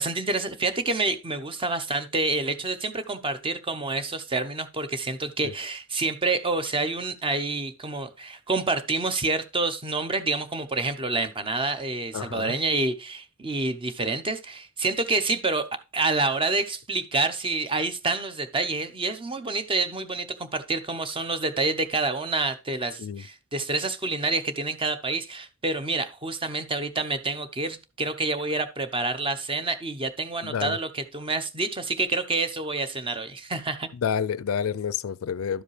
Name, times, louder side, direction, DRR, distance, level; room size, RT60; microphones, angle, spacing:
voice 1, 0.0-15.7 15.9-33.9, right 3 dB, 25° right, 0.7 m, -28 dB
voice 2, 12.1-12.5 23.0-23.2 30.4-30.8 34.0-35.6, left 7 dB, 75° left, 0.4 m, -29 dB
12.0 x 5.1 x 3.2 m
head